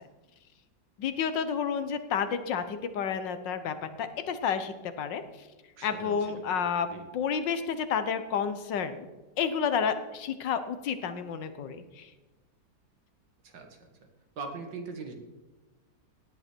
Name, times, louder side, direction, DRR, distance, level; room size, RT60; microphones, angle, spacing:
voice 1, 1.0-5.2 5.8-6.9 7.1-9.1 9.4-12.1, left 7 dB, 80° left, 10 dB, 1.7 m, -30 dB
voice 2, 5.8-7.0 13.4-13.9 14.4-15.1, right 4 dB, 75° right, 4 dB, 2.4 m, -42 dB
17.5 x 10.5 x 4.5 m, 1.2 s
omnidirectional pair, 2.0 m